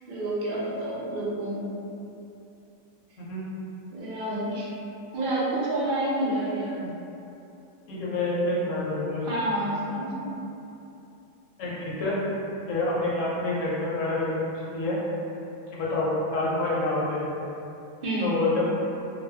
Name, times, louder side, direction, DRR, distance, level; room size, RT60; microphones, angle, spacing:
voice 1, 0.1-1.7 3.9-4.7 5.1-6.9 9.3-10.4 18.0-18.3, right 1 dB, 60° right, -7 dB, 0.5 m, -29 dB
voice 2, 7.9-9.3 11.6-12.2 12.7-15.0 15.7-17.3 18.2-18.7, left 2 dB, 70° left, -6 dB, 0.9 m, -27 dB
2.4 x 2.1 x 3.3 m, 2.8 s
omnidirectional pair, 1.5 m